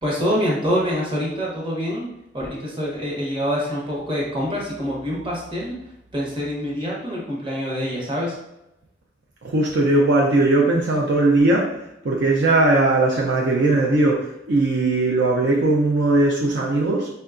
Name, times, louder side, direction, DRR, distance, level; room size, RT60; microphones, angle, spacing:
voice 1, 0.0-2.1 2.3-5.8 6.1-8.4, equal, 25° right, -4 dB, 0.8 m, -25 dB
voice 2, 9.4-11.7 12.0-17.1, right 2 dB, 65° right, -2 dB, 0.4 m, -19 dB
4.4 x 2.2 x 2.4 m, 0.86 s
head